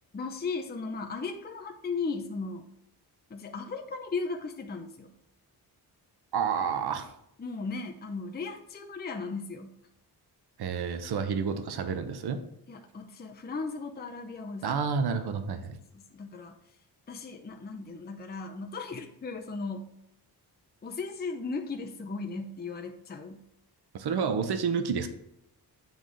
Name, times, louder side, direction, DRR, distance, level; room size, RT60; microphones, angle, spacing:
voice 1, 0.1-2.7 3.3-5.1 7.4-9.8 12.7-14.8 15.9-16.6 17.1-19.9 20.8-23.4, left 4 dB, 25° left, 3 dB, 0.6 m, -36 dB
voice 2, 6.3-7.1 10.6-12.4 14.6-15.8 23.9-25.1, right 6 dB, 70° right, 9 dB, 0.9 m, -29 dB
8.0 x 3.6 x 6.3 m, 0.77 s
wide cardioid pair, 120°, 40 cm